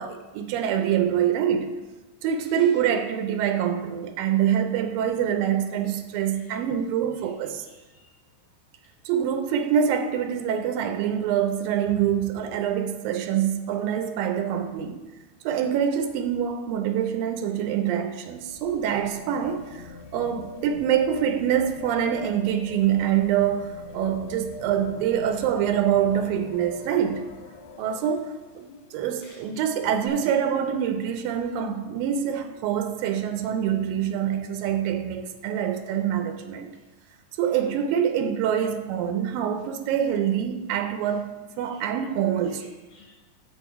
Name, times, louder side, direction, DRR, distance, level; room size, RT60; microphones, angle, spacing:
voice 1, 0.0-1.7 2.2-7.7 9.1-15.0 15.5-19.8 20.1-27.2 27.8-36.7 37.4-42.7, right 9 dB, 85° right, 2.4 m, -25 dB
voice 2, 7.7-8.1 28.7-28.8 29.2-29.4 29.7-29.9 37.4-37.6 41.7-41.8 42.6-43.2, left 3 dB, 65° left, 2.8 m, -51 dB
sound 1, 18.0-28.9 30.1-30.2, left 3 dB, 80° left, 2.4 m, -43 dB
7.1 x 6.4 x 4.4 m
omnidirectional pair, 4.1 m